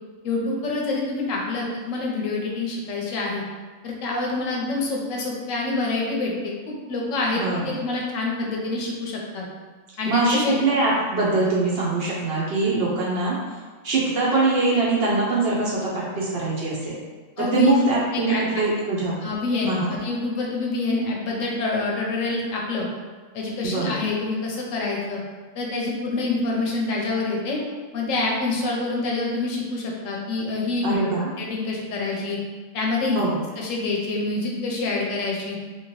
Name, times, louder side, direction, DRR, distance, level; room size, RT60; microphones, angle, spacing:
voice 1, 0.2-3.4 3.8-9.4 10.0-10.6 17.4-17.7 18.1-18.6 19.2-22.9 23.3-25.2 25.5-27.6 27.9-31.0 31.4-32.4 32.7-33.2 33.6-35.6, left 3 dB, 75° left, -2 dB, 1.0 m, -26 dB
voice 2, 7.3-7.7 10.1-13.4 13.8-17.0 17.5-19.2 19.6-19.9 23.6-24.0 30.8-31.3 33.1-33.4, right 3 dB, 60° right, -5 dB, 0.7 m, -23 dB
2.9 x 2.8 x 3.0 m, 1.4 s
omnidirectional pair, 1.4 m